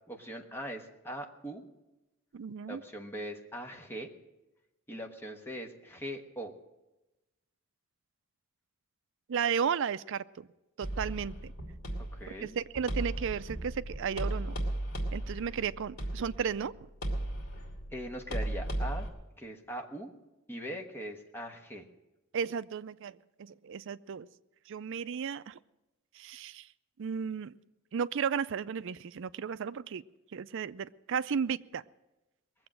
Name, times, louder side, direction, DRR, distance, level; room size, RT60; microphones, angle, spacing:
voice 1, 0.1-1.6 2.7-4.1 4.9-6.5 12.0-12.5 17.9-19.1 19.4-20.1 20.5-21.9, equal, 10° left, 3 dB, 1.3 m, -41 dB
voice 2, 2.3-2.8 9.3-10.5 10.8-11.5 12.4-14.6 15.1-16.7 22.3-24.3 24.7-25.6 26.1-26.7 27.0-27.5 27.9-30.0 30.3-31.8, right 7 dB, 60° right, 15 dB, 0.4 m, -34 dB
sound 1, 10.8-19.1, right 1 dB, 80° left, 2.8 m, -36 dB
20.5 x 7.8 x 7.5 m, 1.0 s
head